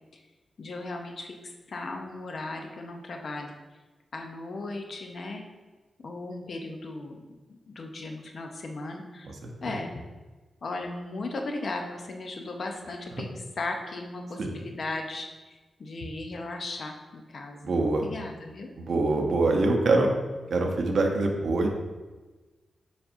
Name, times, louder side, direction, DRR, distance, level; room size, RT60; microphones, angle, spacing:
voice 1, 0.6-3.5 4.1-5.4 6.0-7.2 7.7-9.3 9.6-9.9 10.6-18.7, left 2 dB, 45° left, 3 dB, 0.7 m, -37 dB
voice 2, 17.6-18.1 18.8-20.1 20.5-21.7, right 2 dB, 60° right, 2 dB, 0.8 m, -24 dB
7.2 x 5.2 x 2.6 m, 1.2 s
wide cardioid pair, 165°, 0 cm